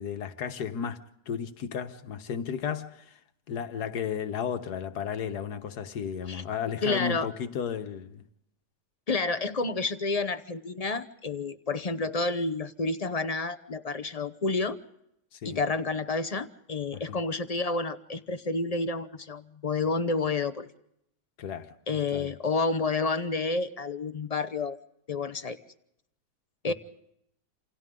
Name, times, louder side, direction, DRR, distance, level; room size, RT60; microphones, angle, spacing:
voice 1, 0.0-3.2 3.5-8.3 15.3-15.6 16.9-17.2 21.4-22.3 26.6-26.7, left 7 dB, 80° left, 1.6 m, -34 dB
voice 2, 6.8-7.3 9.1-14.8 15.4-20.7 21.9-24.8 25.1-25.6 26.6-26.7, left 3 dB, 35° left, 0.7 m, -29 dB
28.0 x 28.0 x 3.7 m
omnidirectional pair, 1.7 m